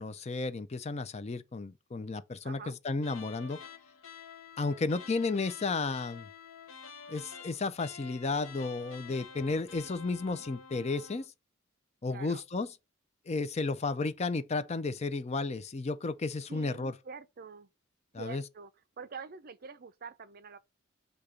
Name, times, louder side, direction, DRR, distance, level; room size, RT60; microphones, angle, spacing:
voice 1, 0.0-3.6 4.6-6.3 7.1-11.3 12.0-12.7 13.3-16.9 18.1-18.4, left 3 dB, 30° left, 0.5 m, -33 dB
voice 2, 2.4-2.7 12.1-12.4 16.5-17.7 18.2-18.7 19.0-20.6, right 5 dB, 45° right, 0.5 m, -46 dB
sound 1, 3.0-11.3, left 6 dB, 80° left, 0.9 m, -49 dB
8.1 x 2.9 x 5.0 m
head